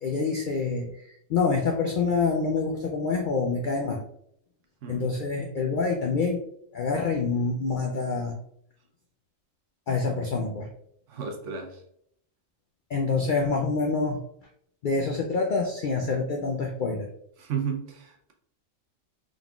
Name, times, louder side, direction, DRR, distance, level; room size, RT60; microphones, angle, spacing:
voice 1, 0.0-4.0 4.9-6.4 6.7-8.4 9.9-10.7 12.9-14.2 14.8-17.1, left 4 dB, 70° left, 1 dB, 0.5 m, -26 dB
voice 2, 11.1-11.8 17.4-18.3, right 7 dB, 70° right, 3 dB, 1.0 m, -33 dB
3.8 x 3.5 x 2.3 m, 0.69 s
omnidirectional pair, 1.4 m